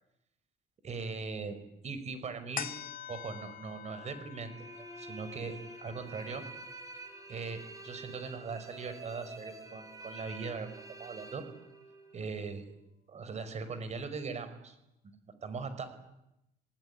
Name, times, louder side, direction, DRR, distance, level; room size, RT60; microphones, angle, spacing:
voice 1, 0.8-1.6 1.8-2.7 3.1-6.4 7.3-11.4 12.1-12.6 13.1-14.8 15.0-15.2 15.4-15.9, right 4 dB, 40° right, 11 dB, 5.3 m, -40 dB
sound 1, 2.6-9.3 9.8-9.9, left 10 dB, 55° left, 1.9 m, -47 dB
sound 2, 4.5-12.2, right 2 dB, 20° right, 5.3 m, -48 dB
28.0 x 19.0 x 9.8 m, 0.86 s
cardioid pair, 110°, 17 cm